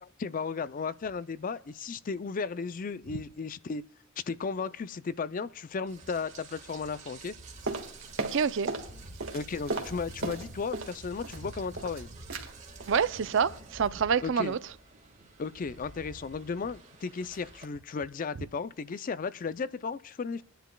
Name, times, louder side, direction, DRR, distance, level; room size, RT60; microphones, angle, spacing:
voice 1, 0.0-3.8 4.3-7.4 9.3-12.1 14.2-14.6 15.4-20.4, left 5 dB, 40° left, 0.4 m, -35 dB
Rain, 5.9-17.6, right 2 dB, 35° right, 1.6 m, -48 dB
sound 1, 7.7-8.9 9.2-11.0 11.2-12.0 12.3-12.5 12.8-13.0 13.3-13.6 13.8-13.9, right 3 dB, 80° right, 1.7 m, -36 dB
voice 2, 8.3-8.7 12.9-14.6, right 6 dB, 60° right, 0.4 m, -27 dB
28.5 x 10.0 x 2.3 m
head